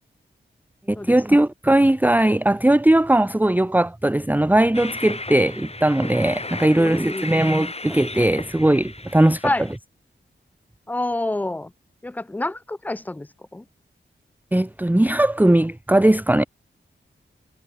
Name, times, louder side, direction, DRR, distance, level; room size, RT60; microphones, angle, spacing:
voice 1, 0.9-9.5 14.5-16.5, right 1 dB, 10° right, 0.8 m, -19 dB
Train, 4.7-9.8, left 2 dB, 30° left, 5.4 m, -34 dB
voice 2, 6.7-7.3 9.4-9.6 10.9-11.7 12.0-13.3 13.5-13.6, left 2 dB, 10° left, 0.4 m, -27 dB
wide cardioid pair, 75°, 20 cm